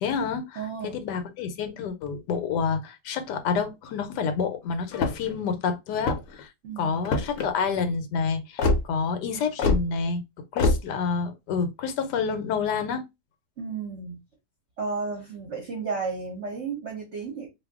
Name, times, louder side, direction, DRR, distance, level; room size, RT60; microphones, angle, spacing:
voice 1, 0.0-6.5 6.8-10.2 10.5-13.1, left 5 dB, 85° left, 1.3 m, -28 dB
voice 2, 0.6-1.0 6.6-7.1 13.6-14.2 14.8-17.5, right 4 dB, 50° right, 1.0 m, -33 dB
sound 1, 4.9-5.4 5.9-6.4 7.0-7.5 8.6-8.8 9.6-9.8 10.6-10.8, left 3 dB, 60° left, 0.9 m, -23 dB
2.6 x 2.4 x 3.5 m
omnidirectional pair, 1.8 m